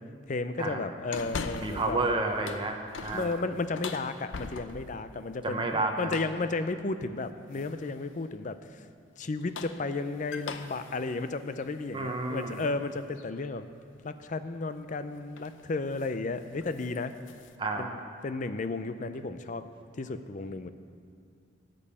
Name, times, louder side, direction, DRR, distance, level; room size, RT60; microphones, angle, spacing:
voice 1, 0.3-2.0 3.1-8.9 9.2-13.7 14.0-17.1 17.8-19.7 20.0-20.7, left 3 dB, 40° left, 11 dB, 0.5 m, -33 dB
sound 1, 1.1-2.0 2.3-5.0 6.1-6.5 7.5-8.0 9.2-12.7 13.2-13.3 14.8-15.0 15.3-15.6 15.9-16.2 16.5-17.5, left 4 dB, 80° left, 0.6 m, -41 dB
voice 2, 1.6-3.3 5.4-6.1 11.9-12.6 17.6-17.9, right 2 dB, 25° right, 3 dB, 0.8 m, -30 dB
13.0 x 5.4 x 8.4 m, 2.4 s
head